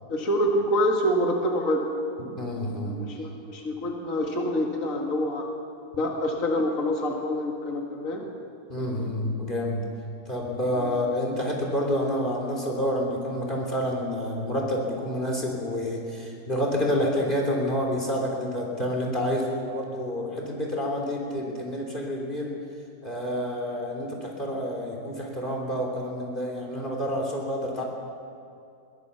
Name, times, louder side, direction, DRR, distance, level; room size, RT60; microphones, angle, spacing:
voice 1, 0.1-1.9 2.8-5.5 6.0-8.3 10.8-10.9, equal, 50° left, 1 dB, 2.4 m, -26 dB
voice 2, 2.4-3.0 8.7-9.9 10.3-22.5 23.0-27.8, equal, 30° left, 0 dB, 3.5 m, -28 dB
23.0 x 17.5 x 7.1 m, 2.5 s
omnidirectional pair, 1.8 m